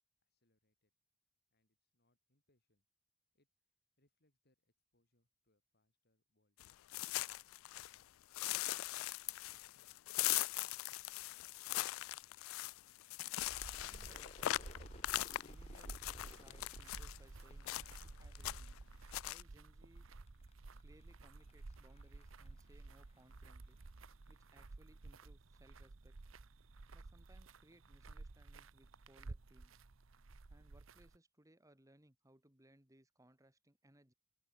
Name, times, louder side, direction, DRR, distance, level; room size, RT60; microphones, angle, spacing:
voice 1, 0.2-0.9 1.5-2.9 3.3-3.5 4.0-6.8, left 1 dB, 55° left, 7.3 m, -83 dB
sound 1, 6.6-8.0 8.3-17.2 17.7-18.1 18.3-18.8 19.1-19.4, left 16 dB, 85° left, 0.3 m, -40 dB
sound 2, 13.4-31.2, right 3 dB, 80° right, 0.9 m, -54 dB
voice 2, 13.7-14.9 15.4-18.8 19.2-20.1 20.8-23.8 24.3-26.2 26.9-29.8 30.5-34.1, right 1 dB, 15° right, 3.0 m, -67 dB
Crowd / Fireworks, 13.8-19.0 19.3-20.0 20.3-23.8, left 2 dB, 30° left, 1.3 m, -62 dB
open air
head